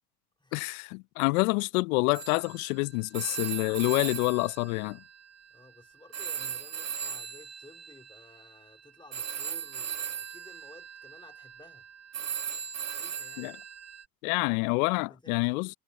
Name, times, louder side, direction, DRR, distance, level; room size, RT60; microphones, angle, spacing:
voice 1, 0.5-5.0 13.4-13.6 14.2-15.7, left 27 dB, 70° left, 0.7 m, -27 dB
Telephone, 2.1-5.8 6.1-14.0, right 8 dB, 35° right, 1.3 m, -38 dB
voice 2, 5.5-11.9 12.9-13.6 14.9-15.5, left 2 dB, 10° left, 3.9 m, -55 dB
hypercardioid pair, 75°, 44 cm